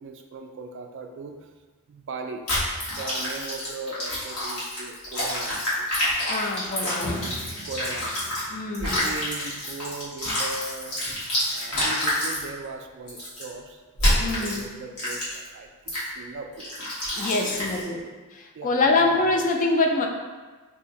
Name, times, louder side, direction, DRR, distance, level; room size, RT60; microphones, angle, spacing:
voice 1, 0.0-1.5 1.9-2.4 2.9-5.9 6.6-7.0 7.6-11.0 11.5-16.7 17.4-18.0 18.5-19.2, right 3 dB, 55° right, 5 dB, 0.3 m, -39 dB
sound 1, 2.5-8.4 8.7-12.4 13.1-13.4 14.0-14.6 15.0-15.5 15.9-16.1 16.6-17.8, left 1 dB, 90° left, 1.4 m, -28 dB
voice 2, 6.3-7.2 8.5-9.0 14.2-14.7 17.2-18.0 18.6-20.1, left 3 dB, 35° left, 2 dB, 0.3 m, -24 dB
sound 2, 7.0-12.5, left 1 dB, 75° left, 0.9 m, -41 dB
2.7 x 2.5 x 4.0 m, 1.3 s
head